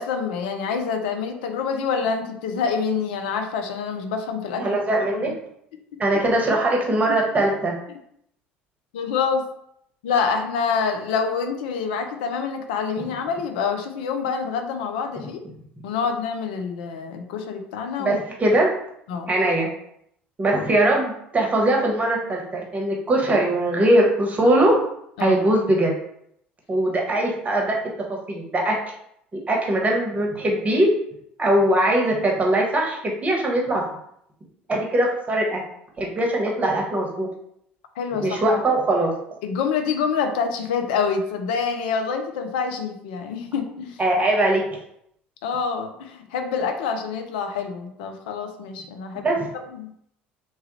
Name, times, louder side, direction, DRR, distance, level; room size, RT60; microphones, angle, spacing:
voice 1, 0.0-4.8 5.1-5.2 7.1-7.2 7.9-8.0 8.9-9.5 10.0-15.4 15.8-18.2 19.1-19.3 25.2-25.4 38.0-38.6 39.4-44.0 45.4-49.3 49.7-49.9, left 5 dB, 65° left, 6 dB, 0.4 m, -26 dB
voice 2, 4.6-5.4 6.0-7.7 18.0-18.7 19.3-19.7 20.4-24.7 25.2-25.9 26.7-27.8 28.1-28.8 29.5-30.9 31.4-33.8 34.7-35.6 36.0-37.3 38.2-39.1 44.0-44.7 49.2-49.4, right 1 dB, 25° right, -1 dB, 1.0 m, -21 dB
3.0 x 2.3 x 2.9 m, 0.72 s
figure-of-eight pair, 60°, 6 cm